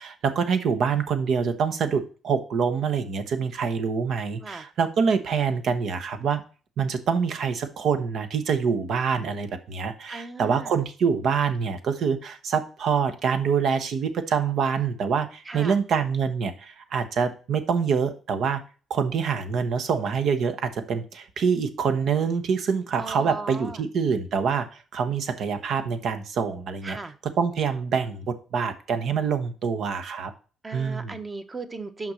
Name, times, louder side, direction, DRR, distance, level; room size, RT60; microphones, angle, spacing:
voice 1, 0.0-6.4 6.8-18.6 18.9-27.0 27.4-30.3 30.7-31.2, right 6 dB, 70° right, 9 dB, 1.1 m, -25 dB
voice 2, 10.1-10.8 15.5-15.8 23.0-23.8 26.8-27.1 30.6-32.1, right 3 dB, 25° right, 8 dB, 1.1 m, -36 dB
6.0 x 5.3 x 6.3 m, 0.38 s
cardioid pair, 90°, 0 cm